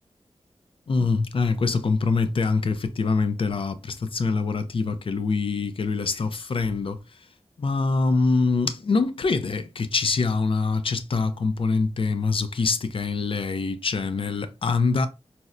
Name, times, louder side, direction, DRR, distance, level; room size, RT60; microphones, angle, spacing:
voice 1, 0.9-7.3 7.6-15.1, left 4 dB, 55° left, 0.4 m, -24 dB
4.1 x 2.1 x 2.4 m
wide cardioid pair, 85°, 11 cm